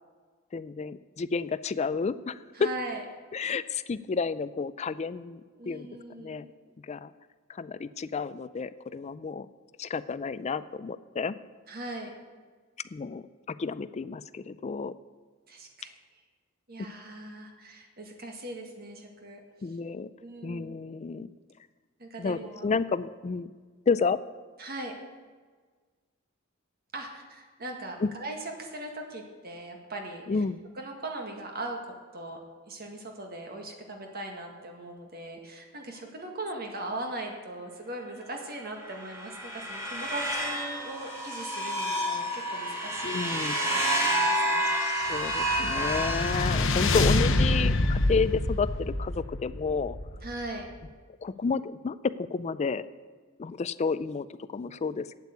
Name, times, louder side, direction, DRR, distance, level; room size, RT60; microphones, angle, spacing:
voice 1, 0.5-2.7 3.3-5.9 6.2-6.5 6.8-7.1 7.5-9.5 9.8-11.3 12.9-15.0 16.8-16.9 19.6-20.1 20.4-21.3 22.2-23.5 23.9-24.2 28.0-28.1 30.3-30.6 43.0-43.5 44.8-50.0 51.2-52.9 53.4-55.2, left 4 dB, 30° left, 15 dB, 0.4 m, -31 dB
voice 2, 2.5-3.0 5.6-6.6 11.7-12.1 15.5-15.9 16.7-19.4 20.2-20.8 22.0-22.7 24.6-24.9 26.9-30.2 30.8-31.8 32.1-32.4 32.7-45.2 50.2-50.6, right 2 dB, 45° right, 3 dB, 1.8 m, -40 dB
sound 1, 38.8-47.1, right 1 dB, 15° right, 2.4 m, -29 dB
sound 2, 45.1-50.6, left 2 dB, 65° left, 0.8 m, -27 dB
8.4 x 8.3 x 8.1 m, 1.5 s
head